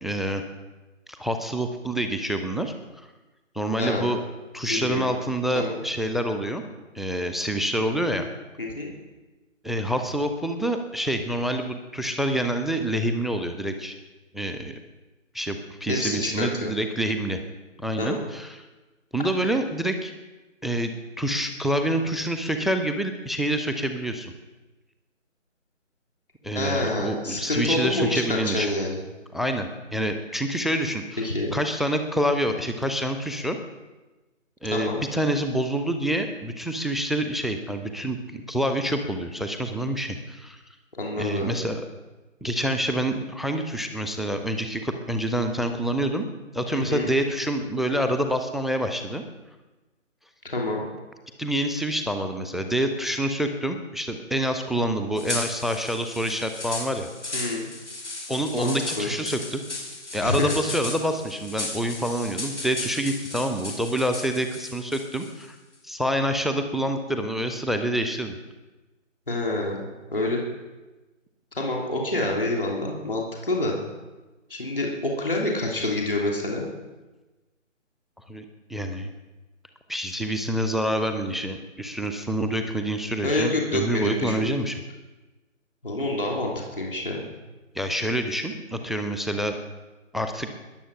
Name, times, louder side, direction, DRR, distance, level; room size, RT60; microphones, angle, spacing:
voice 1, 0.0-0.4 1.1-2.7 3.5-4.2 4.5-6.6 6.9-8.3 9.6-13.9 14.3-14.7 15.3-17.4 17.8-18.6 19.1-20.1 20.6-20.9 21.2-24.3 26.4-28.7 29.3-33.6 34.6-40.6 41.2-41.8 42.4-46.3 46.5-49.2 51.4-57.1 58.3-59.6 60.1-65.6 65.8-68.4 78.3-79.1 79.9-84.8 87.7-89.6 90.1-90.5, right 1 dB, ahead, 6 dB, 0.5 m, -27 dB
voice 2, 3.8-4.1 4.7-5.1 5.5-5.8 8.6-8.9 15.9-16.7 18.0-18.3 26.5-29.0 31.2-31.6 34.7-35.0 41.0-41.6 46.7-47.1 50.4-50.8 57.3-57.7 58.5-59.1 60.2-60.5 69.3-69.9 70.1-70.4 71.6-73.8 74.5-76.7 83.2-84.5 85.8-87.3, left 2 dB, 45° left, -1 dB, 3.1 m, -27 dB
sound 1, 55.2-65.4, left 2 dB, 60° left, 3.9 m, -36 dB
21.0 x 7.6 x 6.2 m, 1.2 s
figure-of-eight pair, 180°, 39 cm